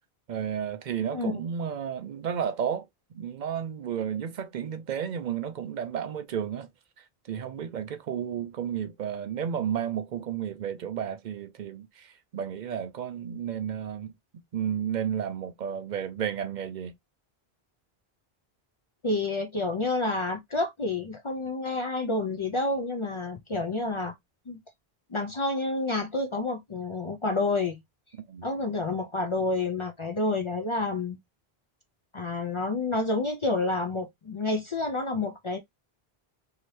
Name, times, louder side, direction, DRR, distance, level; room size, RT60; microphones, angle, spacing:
voice 1, 0.3-2.9 3.1-6.7 7.0-14.1 14.5-16.9 28.3-28.5, right 8 dB, 55° right, 0.6 m, -32 dB
voice 2, 19.0-24.1 24.5-24.6 25.1-27.8 28.4-31.2 32.1-35.6, left 2 dB, 45° left, 0.4 m, -29 dB
2.8 x 2.7 x 3.0 m
omnidirectional pair, 1.0 m